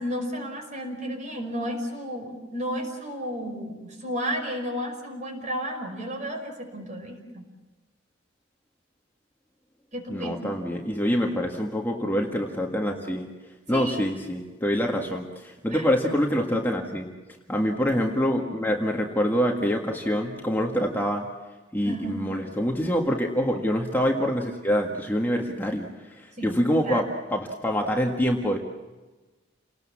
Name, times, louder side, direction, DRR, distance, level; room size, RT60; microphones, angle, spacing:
voice 1, 0.0-7.4 9.9-10.6 13.7-14.0 15.7-15.9 21.8-22.3 26.4-26.6 26.8-27.0, equal, 40° right, 4 dB, 5.4 m, -32 dB
voice 2, 10.1-13.3 13.7-17.1 17.5-21.3 21.7-28.6, equal, 10° left, 0 dB, 1.7 m, -25 dB
29.5 x 19.0 x 7.3 m, 1.2 s
head